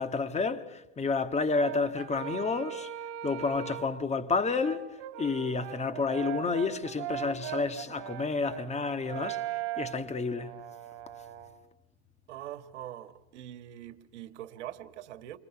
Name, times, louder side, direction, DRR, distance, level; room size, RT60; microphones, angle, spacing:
voice 1, 0.0-2.9 3.2-10.6, left 4 dB, 20° left, 1.6 m, -30 dB
Brass instrument, 1.5-4.0 4.6-11.5, right 11 dB, 50° right, 4.4 m, -39 dB
voice 2, 12.3-15.4, right 12 dB, 80° right, 1.5 m, -43 dB
29.0 x 25.5 x 6.0 m
supercardioid pair, 115°, 34 cm